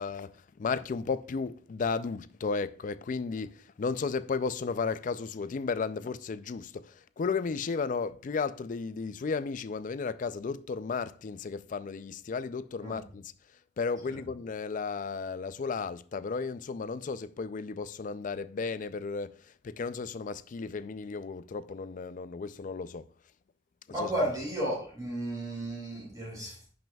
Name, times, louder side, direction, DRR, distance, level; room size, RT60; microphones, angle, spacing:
voice 1, 0.0-13.3 13.8-23.0 24.0-24.1, left 5 dB, 40° left, 0.4 m, -34 dB
voice 2, 23.9-26.7, right 1 dB, 20° right, 4.0 m, -33 dB
10.5 x 6.0 x 2.3 m
head